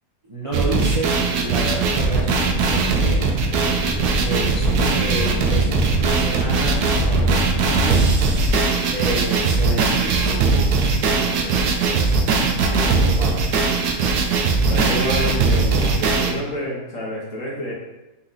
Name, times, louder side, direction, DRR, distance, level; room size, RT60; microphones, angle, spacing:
voice 1, 0.3-3.2 4.2-7.4 7.6-8.4 8.9-12.2 13.0-13.4 13.9-14.2, right 2 dB, 30° right, -6 dB, 0.7 m, -30 dB
sound 1, 0.5-16.3, right 4 dB, 85° right, 1.1 m, -20 dB
sound 2, 0.8-8.5, equal, ahead, 0.8 m, -26 dB
voice 2, 12.6-13.4 14.7-17.7, equal, 60° left, -4 dB, 1.5 m, -28 dB
4.2 x 2.9 x 3.9 m, 1.0 s
omnidirectional pair, 1.5 m